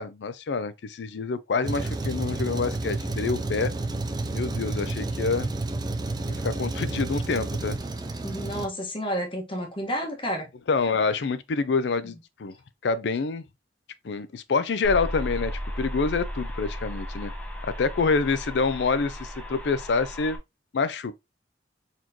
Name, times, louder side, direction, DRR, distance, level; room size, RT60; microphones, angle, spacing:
voice 1, 0.0-3.7 4.3-5.5 6.4-7.8 10.7-12.6 12.8-13.5 14.0-17.3 17.6-20.4 20.7-21.1, left 4 dB, 70° left, 0.4 m, -27 dB
Truck, 1.6-8.7, right 2 dB, 25° right, 0.4 m, -30 dB
voice 2, 8.2-10.5, equal, 30° left, 1.1 m, -30 dB
sound 1, 14.8-20.4, equal, 5° left, 0.7 m, -35 dB
4.1 x 3.1 x 2.7 m
head